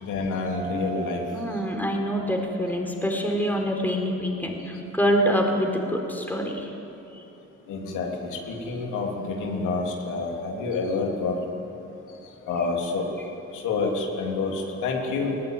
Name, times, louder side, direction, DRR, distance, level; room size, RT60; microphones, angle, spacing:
voice 1, 0.0-1.2 7.7-11.4 12.5-13.1 13.5-15.4, left 4 dB, 85° left, 0 dB, 3.5 m, -28 dB
sound 1, 0.5-3.8, right 7 dB, 80° right, 2.8 m, -40 dB
voice 2, 1.3-6.7 7.1-7.2, equal, 5° left, 1 dB, 4.1 m, -25 dB
20.5 x 18.0 x 9.4 m, 2.9 s
cardioid pair, 90°, 30 cm